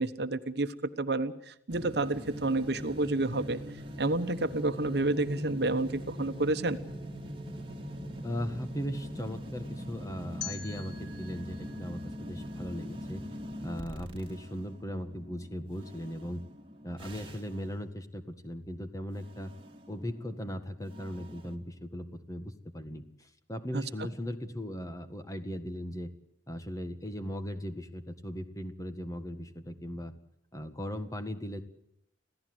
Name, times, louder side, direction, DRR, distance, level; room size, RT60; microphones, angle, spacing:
voice 1, 0.0-3.6 4.0-6.8 23.7-23.8, right 2 dB, 65° right, 10 dB, 1.1 m, -30 dB
sound 1, 1.7-17.8 19.2-21.6, equal, 30° right, 2.4 m, -43 dB
voice 2, 8.2-13.3 13.6-16.4 16.8-19.5 19.9-26.1 26.5-30.1 30.5-31.6, equal, 20° left, 8 dB, 1.6 m, -38 dB
sound 2, 10.4-13.3, left 8 dB, 80° left, 2.7 m, -46 dB
26.5 x 16.0 x 7.9 m, 0.77 s
head